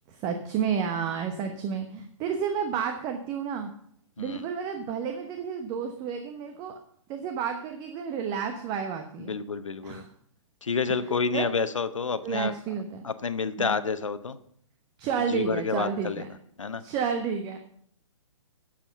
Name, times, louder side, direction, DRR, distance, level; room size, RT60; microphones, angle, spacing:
voice 1, 0.1-3.7 4.2-6.8 7.1-9.3 9.8-10.1 10.9-11.5 12.2-13.0 13.6-13.8 15.0-16.3 16.8-17.6, right 7 dB, 25° right, 6 dB, 1.0 m, -31 dB
voice 2, 9.3-10.0 10.6-12.5 13.0-14.4 15.3-16.2 16.6-16.8, left 5 dB, 75° left, 12 dB, 1.0 m, -29 dB
11.0 x 7.6 x 5.6 m, 0.66 s
figure-of-eight pair, 125°, 16 cm